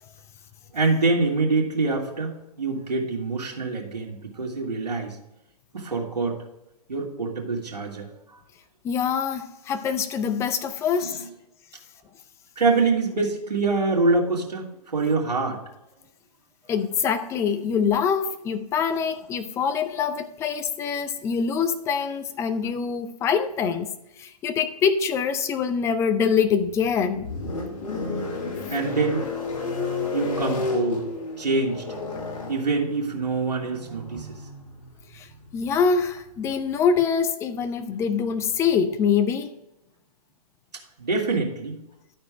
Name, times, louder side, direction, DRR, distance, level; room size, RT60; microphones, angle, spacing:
voice 1, 0.7-5.2 5.7-6.4 6.9-8.1 11.0-11.2 12.6-15.6 28.7-29.3 30.1-31.0 31.4-31.8 32.5-34.4 41.0-41.8, right 3 dB, 90° right, 2.3 m, -25 dB
voice 2, 8.8-11.2 16.7-23.9 24.2-27.3 35.1-35.3 35.5-39.5, left 6 dB, 15° left, 0.5 m, -24 dB
sound 1, 26.5-36.7, left 3 dB, 55° left, 2.6 m, -32 dB
11.5 x 4.4 x 4.9 m
hypercardioid pair, 135°, 21 cm